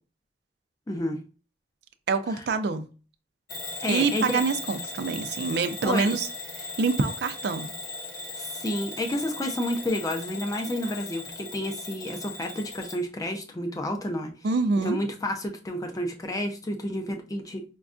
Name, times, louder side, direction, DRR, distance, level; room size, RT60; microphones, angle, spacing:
voice 1, 0.9-1.2 2.3-2.4 3.8-4.4 5.8-6.1 8.4-14.3 14.8-17.6, left 1 dB, 20° left, 0.5 m, -30 dB
voice 2, 2.1-2.9 3.9-6.3 6.6-7.7 14.4-15.0, right 4 dB, 60° right, 0.4 m, -26 dB
Bell / Alarm, 3.5-13.0, left 2 dB, 55° left, 0.7 m, -38 dB
5.1 x 2.3 x 2.5 m
head